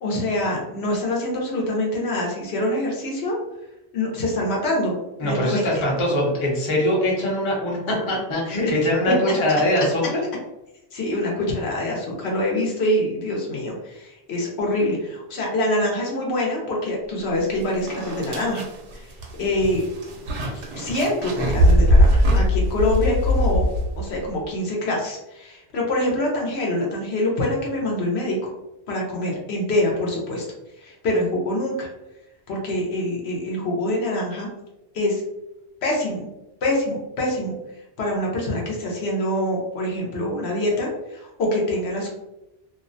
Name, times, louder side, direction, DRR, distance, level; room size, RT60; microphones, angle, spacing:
voice 1, 0.0-3.4 3.9-5.0 5.2-5.7 9.1-9.3 10.9-18.6 18.9-19.1 19.4-19.8 20.8-23.7 24.0-28.4 28.9-30.5 30.8-31.9 32.5-34.5 34.9-35.2 35.8-36.3 36.6-37.5 38.0-42.1, left 1 dB, 75° left, -2 dB, 0.9 m, -25 dB
voice 2, 5.2-10.0, left 1 dB, 35° left, -3 dB, 0.6 m, -22 dB
sound 1, 17.4-17.5 17.9-24.2, equal, 85° right, 0.9 m, -20 dB
2.5 x 2.1 x 2.5 m, 0.94 s
omnidirectional pair, 1.1 m